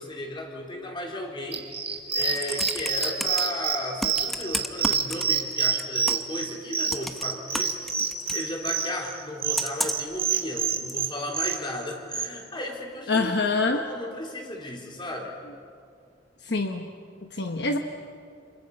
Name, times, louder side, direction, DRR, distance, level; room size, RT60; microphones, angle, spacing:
voice 1, 0.0-1.7 2.1-7.9 8.3-13.3 13.7-15.3, left 1 dB, 25° left, 0 dB, 3.7 m, -35 dB
sound 1, 1.5-12.3, right 6 dB, 35° right, 3.1 m, -27 dB
Computer keyboard, 2.0-3.4 4.0-5.5 5.8-6.4 6.9-8.4 9.5-10.1 10.9-11.0, equal, ahead, 0.8 m, -32 dB
voice 2, 13.1-13.9 16.5-16.8 17.3-17.8, left 3 dB, 65° left, 4 dB, 1.2 m, -25 dB
29.0 x 27.5 x 5.5 m, 2.3 s
head